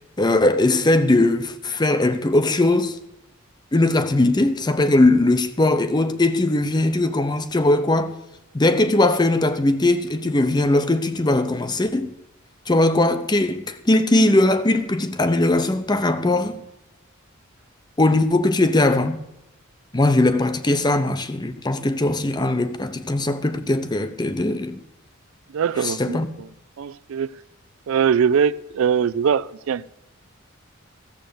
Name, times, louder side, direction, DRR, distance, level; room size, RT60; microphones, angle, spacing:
voice 1, 0.2-3.0 3.7-8.1 8.5-12.1 12.7-16.6 18.0-19.2 19.9-24.8 25.8-26.3, left 2 dB, 20° left, 0.7 m, -20 dB
voice 2, 25.5-26.5 26.8-27.3 27.9-29.9, right 7 dB, 75° right, 0.4 m, -22 dB
14.5 x 7.7 x 6.8 m
head